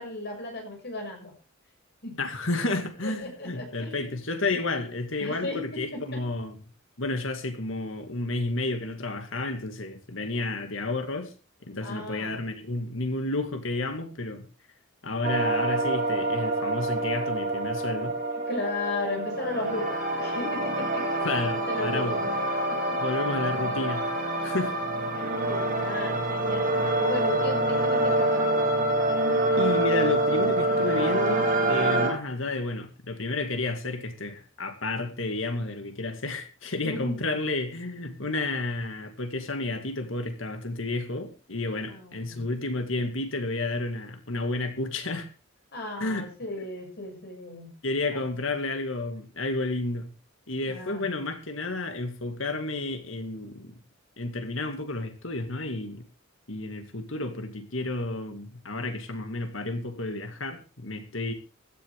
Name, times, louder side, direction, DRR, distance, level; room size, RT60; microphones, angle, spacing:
voice 1, 0.0-1.3 2.0-2.2 3.0-4.2 5.2-6.2 11.8-12.4 18.3-22.3 22.7-23.0 24.4-24.6 25.1-28.6 36.8-37.2 41.9-42.4 45.7-47.7 48.1-48.2 50.6-51.1, left 2 dB, 55° left, 6.9 m, -35 dB
voice 2, 2.2-6.6 7.0-11.3 11.6-14.5 15.0-18.2 21.2-22.2 23.0-24.1 24.4-24.8 29.6-45.3 46.0-46.3 47.8-50.1 50.5-53.7 54.2-56.0 56.5-61.3, left 2 dB, 75° left, 2.2 m, -31 dB
sound 1, 15.2-32.1, right 1 dB, 40° right, 7.2 m, -26 dB
16.0 x 13.5 x 3.6 m
head